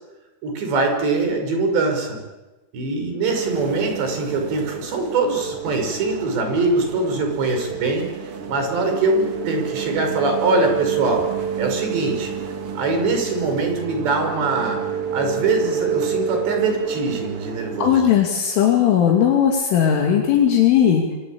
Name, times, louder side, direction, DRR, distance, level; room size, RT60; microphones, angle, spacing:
voice 1, 0.4-2.2 2.7-11.3 11.6-12.3 12.8-14.8 15.1-18.1, right 3 dB, 55° right, 4 dB, 7.6 m, -23 dB
sound 1, 3.3-17.9, right 8 dB, 85° right, 1.2 m, -29 dB
voice 2, 17.8-21.2, left 9 dB, 70° left, 1 dB, 5.1 m, -17 dB
26.0 x 25.0 x 8.8 m, 1.1 s
omnidirectional pair, 5.9 m